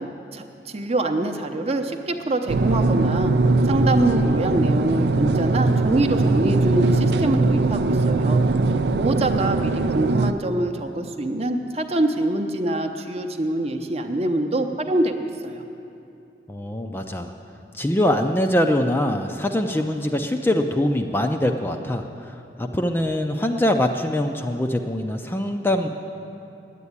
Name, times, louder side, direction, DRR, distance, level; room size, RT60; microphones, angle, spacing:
voice 1, 0.0-3.3 3.6-8.4 9.0-15.6, right 1 dB, 35° right, 5 dB, 0.7 m, -25 dB
sound 1, 2.5-10.3, right 3 dB, 70° right, 0.4 m, -20 dB
voice 2, 16.5-17.3 17.7-25.9, left 1 dB, 10° left, 4 dB, 0.4 m, -23 dB
9.8 x 8.3 x 9.6 m, 2.8 s
head